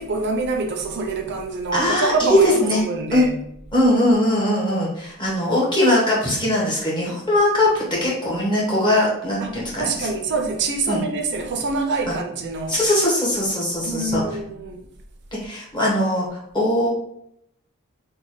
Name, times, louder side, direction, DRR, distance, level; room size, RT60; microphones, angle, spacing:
voice 1, 0.0-3.3 9.4-12.8 13.8-14.8, right 3 dB, 50° right, 0.5 m, -25 dB
voice 2, 1.7-2.8 3.1-3.3 3.7-10.1 10.9-11.0 12.1-12.2 12.7-14.2 15.4-16.9, left 1 dB, 20° left, 1.1 m, -20 dB
3.2 x 2.2 x 4.0 m
head